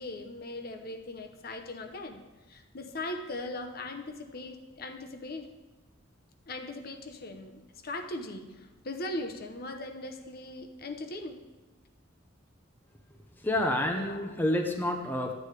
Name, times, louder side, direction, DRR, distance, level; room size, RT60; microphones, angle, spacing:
voice 1, 0.0-2.2 2.5-5.5 6.5-11.4 13.9-14.3, left 2 dB, 50° left, 4 dB, 0.8 m, -39 dB
voice 2, 13.4-15.3, left 1 dB, 10° left, 3 dB, 0.7 m, -28 dB
13.0 x 8.4 x 3.3 m, 1.2 s
head